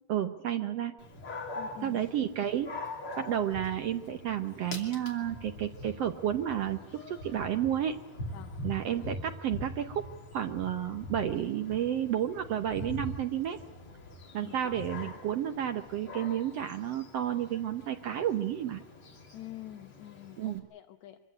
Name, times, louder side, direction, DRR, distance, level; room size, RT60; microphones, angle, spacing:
voice 1, 0.1-1.0 1.8-2.7 3.2-8.0 8.6-10.0 10.3-13.6 14.3-18.8 20.4-20.6, right 10 dB, 70° right, 7 dB, 1.5 m, -31 dB
Dog, 1.0-20.6, left 1 dB, 40° left, 3.4 m, -43 dB
voice 2, 1.6-2.0 8.3-8.6 14.4-14.8 19.3-21.2, left 13 dB, 70° left, 7 dB, 2.0 m, -46 dB
24.5 x 16.0 x 9.8 m, 0.94 s
omnidirectional pair, 4.0 m